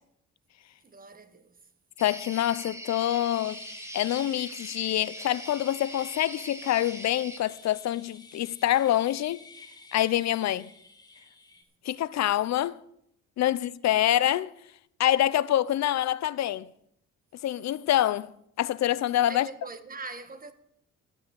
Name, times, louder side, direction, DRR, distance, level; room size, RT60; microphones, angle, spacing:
voice 1, 0.8-1.6 19.3-20.5, right 3 dB, 30° right, 1.4 m, -42 dB
voice 2, 2.0-3.6 3.9-9.4 9.9-10.7 11.8-12.8 13.4-14.5 15.0-16.7 17.4-19.5, left 12 dB, 60° left, 0.7 m, -26 dB
sound 1, 2.0-7.4, right 1 dB, 10° right, 1.7 m, -42 dB
sound 2, 3.3-11.6, left 3 dB, 15° left, 1.6 m, -50 dB
13.5 x 6.2 x 9.6 m
cardioid pair, 90°, 30 cm